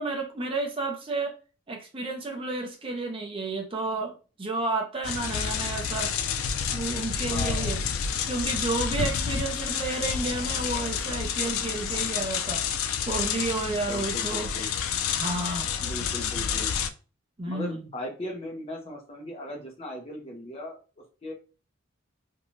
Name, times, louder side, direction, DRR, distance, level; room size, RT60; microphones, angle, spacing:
voice 1, 0.0-1.4 1.7-4.1 4.4-6.1 6.7-7.8 8.2-12.6 13.1-14.5 15.1-15.7 17.4-17.8, right 3 dB, 25° right, 1 dB, 0.5 m, -31 dB
sound 1, 5.0-16.9, left 7 dB, 80° left, 0.3 m, -29 dB
voice 2, 7.3-7.8 13.7-14.7 15.8-16.7 17.5-20.8 21.2-21.3, left 1 dB, 30° left, 1 dB, 0.6 m, -38 dB
2.6 x 2.2 x 3.0 m, 0.35 s
head